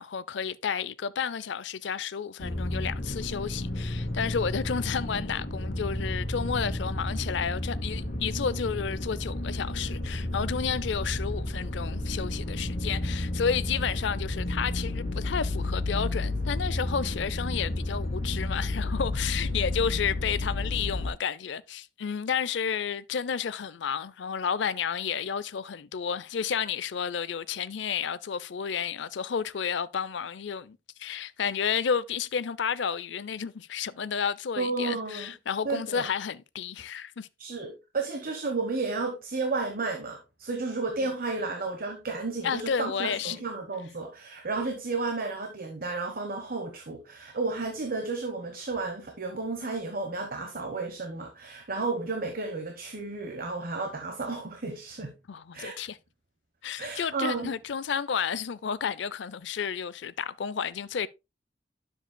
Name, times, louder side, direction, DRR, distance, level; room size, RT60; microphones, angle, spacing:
voice 1, 0.0-37.3 42.4-43.4 55.3-56.0 56.6-61.1, left 7 dB, 65° left, 0.5 m, -31 dB
sound 1, 2.4-21.1, left 1 dB, 45° left, 2.0 m, -31 dB
voice 2, 34.6-35.3 35.6-36.1 37.4-55.1 55.5-55.8 56.8-57.5, right 3 dB, 50° right, 1.1 m, -32 dB
10.0 x 7.1 x 2.2 m
head